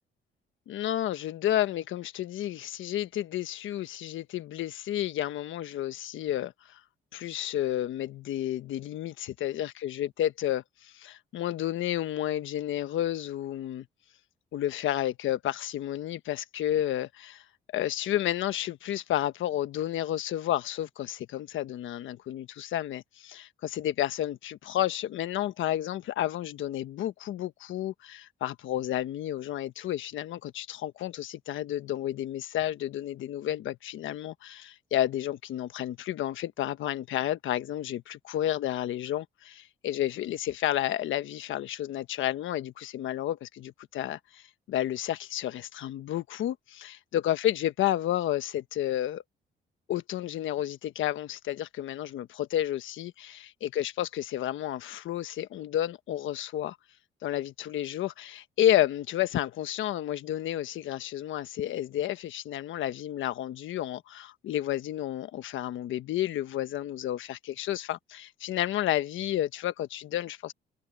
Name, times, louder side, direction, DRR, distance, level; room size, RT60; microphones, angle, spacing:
voice 1, 0.7-6.8 7.1-13.9 14.5-17.4 17.7-49.2 49.9-56.8 57.2-70.5, left 12 dB, 80° left, 1.2 m, -31 dB
cardioid pair, 90°, 20 cm